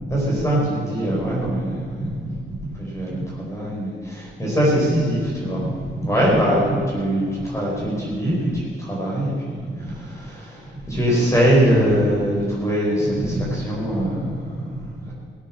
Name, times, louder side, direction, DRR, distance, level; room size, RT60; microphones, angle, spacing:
voice 1, 0.0-15.1, equal, 15° left, -5 dB, 4.3 m, -22 dB
18.0 x 8.2 x 7.4 m, 2.1 s
wide cardioid pair, 140°, 21 cm